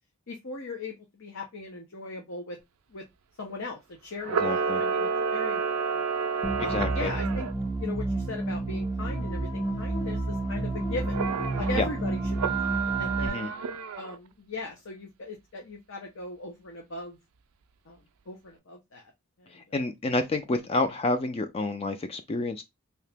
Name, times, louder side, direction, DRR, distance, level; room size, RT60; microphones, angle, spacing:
voice 1, 0.3-2.6 2.9-3.0 3.4-6.0 6.6-7.5 7.8-11.2 11.6-13.5 14.0-17.2 17.9-19.1 19.4-19.8, left 3 dB, 60° left, 0.8 m, -39 dB
Camera, 4.2-7.5 11.1-11.8 12.3-14.2, right 5 dB, 75° right, 0.4 m, -29 dB
voice 2, 4.4-4.8 6.7-7.1 11.8-11.9 13.2-13.5 19.5-22.6, left 2 dB, 25° left, 0.4 m, -29 dB
sound 1, 6.4-13.3, right 2 dB, 15° right, 0.6 m, -30 dB
2.9 x 2.7 x 3.4 m
head